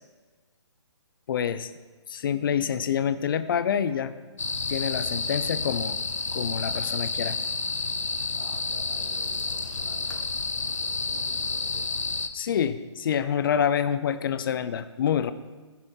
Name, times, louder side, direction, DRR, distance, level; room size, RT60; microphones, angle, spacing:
voice 1, 1.3-1.7 2.1-4.1 4.7-6.0 6.3-7.4 12.3-15.3, left 8 dB, 45° left, 13 dB, 0.8 m, -27 dB
sound 1, 4.4-12.3, left 4 dB, 90° left, 1.0 m, -30 dB
voice 2, 8.3-10.2 10.6-12.1, right 2 dB, 85° right, -4 dB, 2.7 m, -49 dB
15.0 x 10.5 x 4.6 m, 1.3 s
hypercardioid pair, 145°, 16 cm